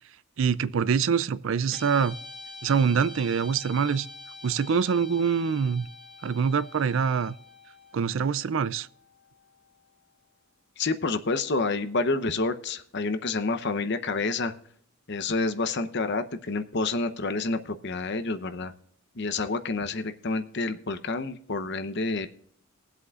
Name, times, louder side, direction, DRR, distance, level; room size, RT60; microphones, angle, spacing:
voice 1, 0.4-2.1 2.6-4.1 4.4-5.9 6.2-7.4 7.9-8.9, right 6 dB, 60° right, 0.4 m, -25 dB
Guitar, 1.7-10.2, left 2 dB, 5° left, 1.5 m, -46 dB
voice 2, 10.8-14.5 15.1-18.7 19.1-22.3, left 3 dB, 50° left, 0.8 m, -28 dB
21.5 x 7.9 x 2.4 m
head